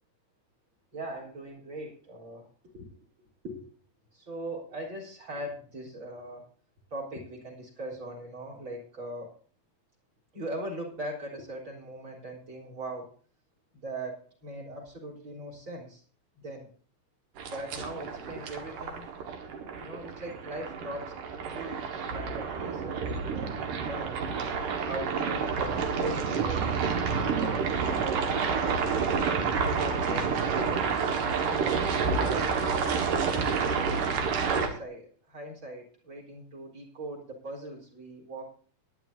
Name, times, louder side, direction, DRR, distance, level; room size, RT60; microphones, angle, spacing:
voice 1, 0.9-2.5 2.7-2.9 3.4-3.6 4.1-6.5 6.9-9.4 10.3-13.1 13.7-16.0 16.4-16.7 17.5-19.1 19.8-21.1 21.5-24.2 24.8-26.9 27.6-28.9 29.6-33.0 33.6-38.5, right 1 dB, 35° right, 2 dB, 4.4 m, -40 dB
sound 1, 17.4-34.7, right 5 dB, 80° right, 3.1 m, -29 dB
20.5 x 11.0 x 2.7 m, 0.42 s
omnidirectional pair, 3.7 m